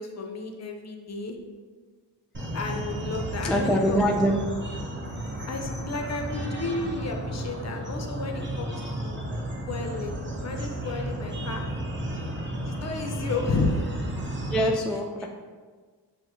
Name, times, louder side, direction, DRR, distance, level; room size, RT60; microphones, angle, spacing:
voice 1, 0.0-1.4 2.5-4.0 5.5-8.7 9.0-9.2 9.7-11.6 12.7-13.8, left 3 dB, 40° left, 3 dB, 0.6 m, -32 dB
sound 1, 2.3-14.7, right 1 dB, 25° right, 0.8 m, -33 dB
voice 2, 3.4-4.4 10.1-10.5 14.5-15.3, equal, ahead, 1 dB, 0.3 m, -25 dB
5.7 x 2.1 x 3.0 m, 1.5 s
cardioid pair, 55°, 43 cm